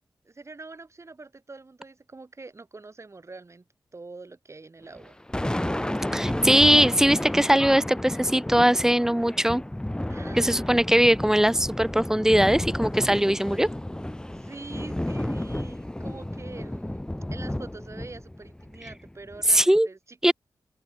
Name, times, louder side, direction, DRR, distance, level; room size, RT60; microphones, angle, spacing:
voice 1, 0.2-3.6 3.9-5.2 10.1-10.8 14.3-17.0 17.3-20.3, right 3 dB, 40° right, 5.6 m, -44 dB
Thunder, 5.0-19.6, left 1 dB, 10° left, 2.4 m, -32 dB
voice 2, 6.1-9.6 10.3-13.7 19.5-19.9 20.2-20.3, equal, 5° right, 0.5 m, -20 dB
open air
wide cardioid pair, 85°, 8 cm